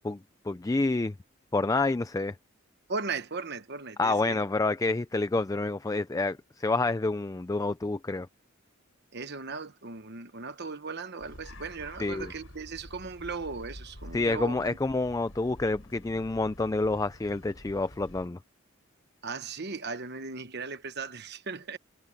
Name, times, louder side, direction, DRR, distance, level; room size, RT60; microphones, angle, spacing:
voice 1, 0.5-1.1 1.5-2.4 4.0-8.3 12.0-12.3 14.1-18.4, left 3 dB, 15° left, 0.4 m, -28 dB
voice 2, 2.9-4.4 9.1-14.8 19.2-21.8, right 4 dB, 55° right, 1.2 m, -37 dB
sound 1, 11.2-18.3, left 1 dB, 75° left, 5.8 m, -48 dB
head